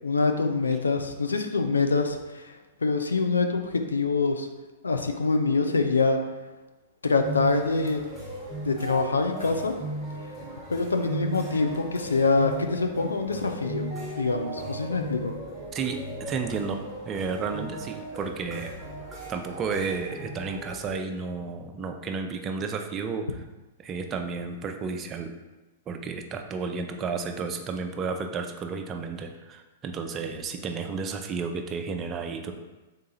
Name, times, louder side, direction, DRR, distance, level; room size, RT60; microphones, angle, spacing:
voice 1, 0.0-2.5 2.8-4.5 4.8-6.2 7.0-8.0 8.6-9.7 10.7-13.9 14.2-15.3, left 3 dB, 85° left, 5 dB, 0.4 m, -25 dB
sound 1, 7.2-21.0, right 1 dB, ahead, 1.1 m, -37 dB
voice 2, 15.7-18.8 19.3-23.4 23.8-25.3 25.9-32.5, right 5 dB, 25° right, 5 dB, 0.4 m, -32 dB
3.7 x 2.8 x 3.9 m, 1.1 s
hypercardioid pair, 110°, 0 cm